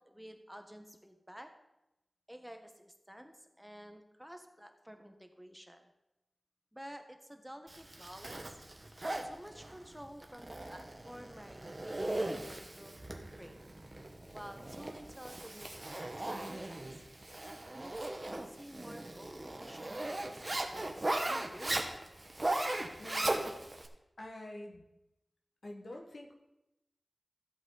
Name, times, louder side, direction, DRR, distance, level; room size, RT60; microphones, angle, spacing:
voice 1, 0.0-1.5 2.3-5.9 6.7-8.6 9.2-13.6 14.3-17.0 17.7-21.9, equal, 5° right, 5 dB, 1.2 m, -51 dB
Zipper (clothing), 7.7-23.9, right 1 dB, 35° right, 1.2 m, -38 dB
voice 2, 23.0-23.5 24.2-24.9 25.6-26.3, left 1 dB, 65° left, 0 dB, 1.4 m, -46 dB
14.0 x 8.1 x 4.0 m, 0.93 s
wide cardioid pair, 80°, 0 cm